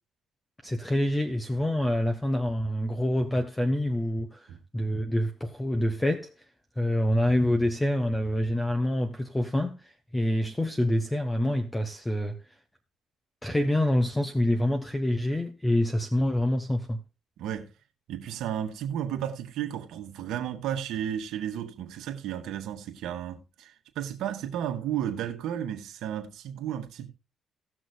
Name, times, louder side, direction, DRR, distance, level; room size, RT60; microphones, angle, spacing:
voice 1, 0.6-4.5 4.7-6.3 6.8-12.3 13.4-17.0, left 1 dB, 10° left, 1.0 m, -26 dB
voice 2, 17.4-17.7 18.1-27.1, right 10 dB, 85° right, 1.6 m, -33 dB
18.0 x 6.2 x 2.3 m
cardioid pair, 90°, 0 cm